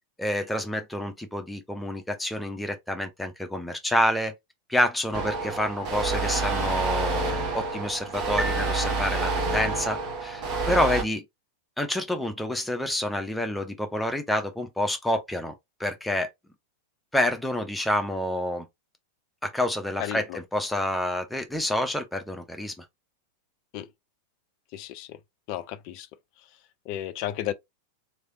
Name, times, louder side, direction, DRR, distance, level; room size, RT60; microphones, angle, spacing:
voice 1, 0.2-4.3 4.7-11.2 11.8-15.5 15.8-16.3 17.1-18.7 19.4-22.7, left 1 dB, 5° left, 0.8 m, -28 dB
sound 1, 5.1-11.0, right 3 dB, 40° right, 1.1 m, -28 dB
sound 2, 8.4-9.8, right 1 dB, 25° right, 0.7 m, -36 dB
voice 2, 20.0-20.4 23.7-23.9 24.7-25.2 25.5-26.1 26.9-27.5, left 12 dB, 45° left, 0.5 m, -33 dB
3.3 x 2.8 x 2.6 m
figure-of-eight pair, 90°, 0 cm